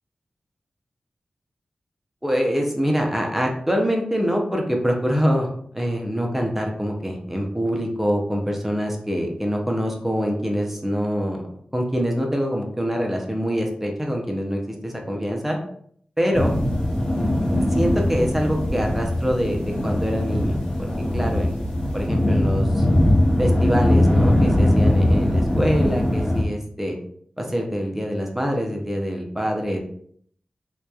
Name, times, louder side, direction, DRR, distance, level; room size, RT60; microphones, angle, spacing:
voice 1, 2.2-5.5 5.7-11.4 11.7-15.6 16.2-16.5 17.7-21.6 21.9-22.9 23.4-27.0 27.4-29.8, equal, 10° right, 1 dB, 0.5 m, -25 dB
sound 1, 16.3-26.4, left 1 dB, 25° left, 0.8 m, -20 dB
2.8 x 2.2 x 2.2 m, 0.63 s
wide cardioid pair, 105°, 2 cm